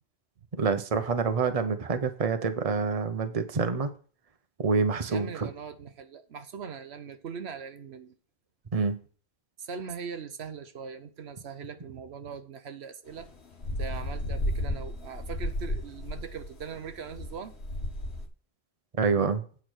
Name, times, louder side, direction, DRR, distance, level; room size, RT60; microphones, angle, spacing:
voice 1, 0.5-3.9 4.6-5.5 8.7-9.0 19.0-19.4, right 5 dB, 35° right, 0.9 m, -27 dB
voice 2, 5.1-8.1 9.6-13.3 13.8-17.5, right 6 dB, 80° right, 1.1 m, -41 dB
sound 1, 13.1-18.3, left 1 dB, 80° left, 1.7 m, -33 dB
8.8 x 4.7 x 6.3 m
omnidirectional pair, 1.1 m